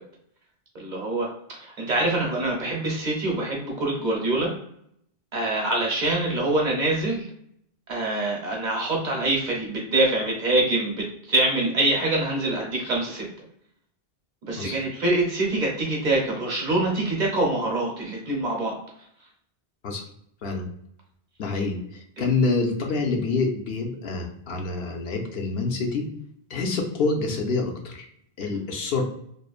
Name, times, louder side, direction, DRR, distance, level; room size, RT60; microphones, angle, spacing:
voice 1, 0.7-4.5 5.3-7.3 7.9-13.3 14.4-18.8 22.2-22.3, right 2 dB, 50° right, -1 dB, 0.8 m, -25 dB
voice 2, 21.4-26.1 26.5-28.0 28.4-29.0, left 3 dB, 70° left, 2 dB, 0.8 m, -27 dB
2.9 x 2.1 x 2.3 m, 0.70 s
omnidirectional pair, 1.0 m